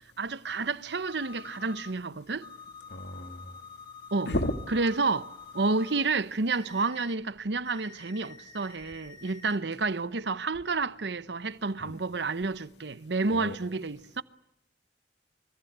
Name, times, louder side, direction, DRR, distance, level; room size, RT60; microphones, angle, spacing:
voice 1, 0.2-2.5 4.1-4.3 4.7-14.2, right 3 dB, 75° right, 0.9 m, -30 dB
sound 1, 1.1-1.9 2.4-6.0 6.5-7.2 7.7-9.6, left 5 dB, 25° left, 2.0 m, -48 dB
voice 2, 2.9-3.5 4.3-4.6 11.8-12.0 13.3-13.6, left 1 dB, 70° left, 2.0 m, -32 dB
25.5 x 24.5 x 8.0 m
head